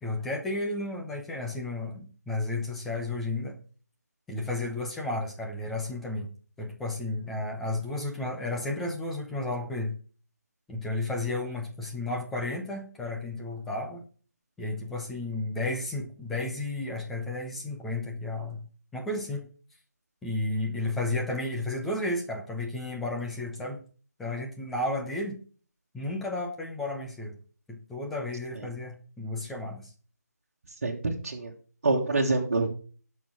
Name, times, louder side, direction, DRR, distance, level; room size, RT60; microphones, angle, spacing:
voice 1, 0.0-3.6 4.3-6.3 6.6-10.0 10.7-14.0 14.6-18.6 18.9-19.5 20.2-23.8 24.2-25.4 25.9-27.3 27.7-29.9, left 2 dB, ahead, 0 dB, 0.4 m, -32 dB
voice 2, 30.8-31.5 31.8-32.7, right 3 dB, 35° right, -3 dB, 1.8 m, -26 dB
17.5 x 6.3 x 3.6 m, 0.40 s
figure-of-eight pair, 175°, 9 cm